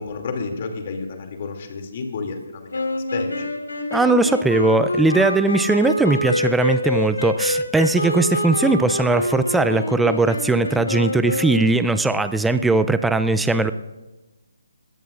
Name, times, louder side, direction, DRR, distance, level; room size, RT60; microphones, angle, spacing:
voice 1, 0.0-3.5, left 4 dB, 40° left, 3 dB, 2.6 m, -31 dB
sound 1, 2.7-11.9, left 1 dB, 85° left, 3.2 m, -26 dB
voice 2, 3.9-13.7, right 3 dB, 5° right, 11 dB, 0.4 m, -19 dB
20.5 x 17.0 x 2.5 m, 1.1 s
figure-of-eight pair, 150°, 0 cm